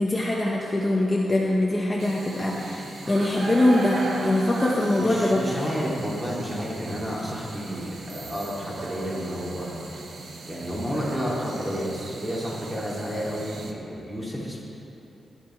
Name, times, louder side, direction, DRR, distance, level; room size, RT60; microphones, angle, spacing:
voice 1, 0.0-5.5, left 1 dB, 15° left, -3 dB, 1.0 m, -23 dB
sound 1, 2.0-13.7, right 3 dB, 50° right, 1.2 m, -38 dB
voice 2, 5.0-9.8 10.5-14.6, equal, 15° right, -5 dB, 3.0 m, -31 dB
19.0 x 10.0 x 4.6 m, 2.9 s
wide cardioid pair, 155°, 0 cm